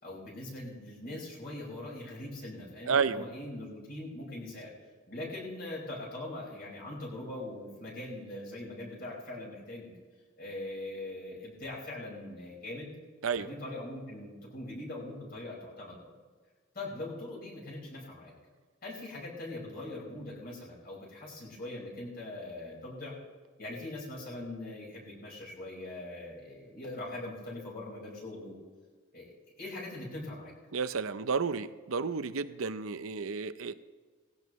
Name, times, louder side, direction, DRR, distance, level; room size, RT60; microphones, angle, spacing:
voice 1, 0.0-4.7 5.1-9.9 10.4-12.9 13.4-16.1 16.7-18.3 18.8-23.1 23.6-28.5 29.1-30.5, left 1 dB, 45° left, -3 dB, 5.0 m, -41 dB
voice 2, 2.9-3.2 13.2-13.5 30.7-33.7, right 5 dB, 80° right, 12 dB, 0.6 m, -31 dB
18.5 x 16.5 x 3.1 m, 1.5 s
head